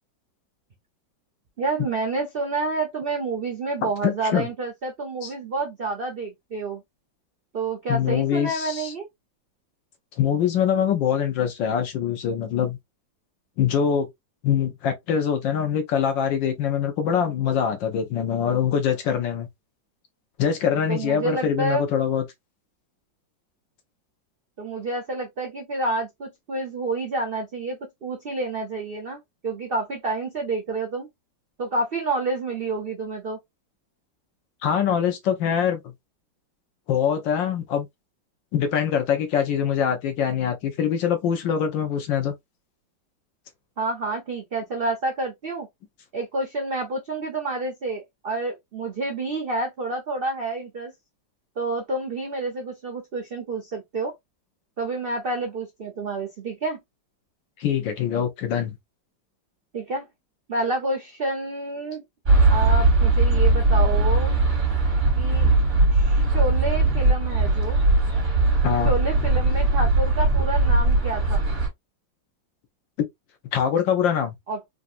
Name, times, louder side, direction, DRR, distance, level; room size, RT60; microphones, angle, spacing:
voice 1, 1.6-6.8 7.5-9.1 20.9-21.9 24.6-31.1 31.6-33.4 43.8-45.7 46.1-50.9 51.6-54.1 54.8-56.8 59.7-60.1 60.5-62.0 62.5-64.3 65.1-65.5 65.9-67.8 68.8-71.4 74.5-74.6, right 3 dB, 75° right, 0.5 m, -29 dB
voice 2, 3.8-4.5 5.2-5.3 7.9-8.9 10.2-12.8 13.6-14.1 14.4-19.5 20.4-22.2 34.6-35.9 36.9-37.9 38.5-42.3 57.6-58.8 68.6-68.9 73.0-73.1 73.5-74.3, left 8 dB, 75° left, 1.5 m, -23 dB
sound 1, 62.2-71.7, right 2 dB, 40° right, 1.8 m, -19 dB
3.9 x 2.4 x 2.5 m
omnidirectional pair, 2.0 m